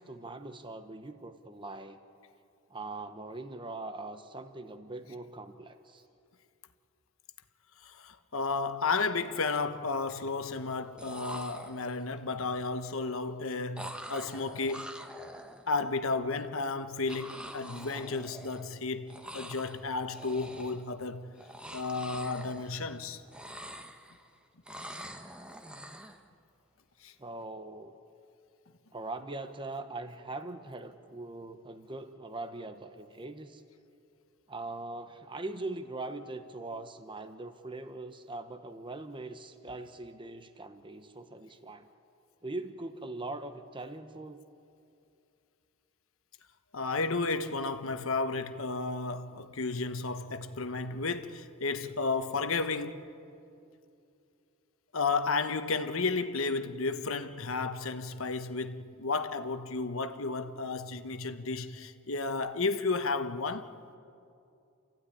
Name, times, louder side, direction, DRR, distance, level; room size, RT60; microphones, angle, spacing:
voice 1, 0.0-2.0 2.7-6.0 27.2-27.9 28.9-33.6 34.5-41.9 42.4-44.4, right 2 dB, 25° right, 1.0 m, -41 dB
voice 2, 7.8-14.9 15.7-21.3 21.7-23.2 27.0-27.1 46.7-53.0 54.9-63.7, left 3 dB, 70° left, 1.1 m, -33 dB
sound 1, 8.5-8.7 9.1-9.7 10.7-10.8 11.0-12.2 13.8-16.0 17.1-18.8 19.1-19.8 20.1-20.9 21.3-23.0 23.3-24.3 24.7-26.2, equal, 5° right, 1.2 m, -45 dB
28.5 x 15.0 x 9.9 m
head